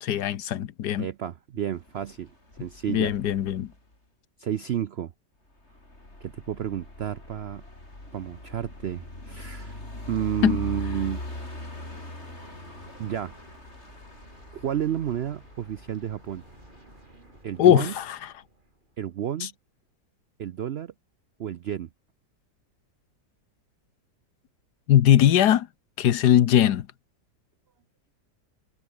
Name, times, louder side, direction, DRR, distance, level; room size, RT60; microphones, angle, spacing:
voice 1, 0.0-1.1 2.9-3.7 10.4-10.6 17.6-18.2 19.4-19.5 24.9-25.7 26.0-26.9, left 11 dB, 75° left, 1.5 m, -20 dB
voice 2, 1.0-2.3 2.6-3.1 4.4-5.1 6.2-7.6 8.1-9.8 10.1-11.2 13.0-13.4 14.5-16.4 17.2-17.9 19.0-19.5 20.4-20.9 21.4-21.9, right 10 dB, 75° right, 0.5 m, -31 dB
sound 1, 1.8-3.9 5.6-17.4, left 2 dB, 40° left, 5.9 m, -41 dB
sound 2, 11.2-19.4, right 2 dB, 30° right, 4.2 m, -54 dB
omnidirectional pair, 1.8 m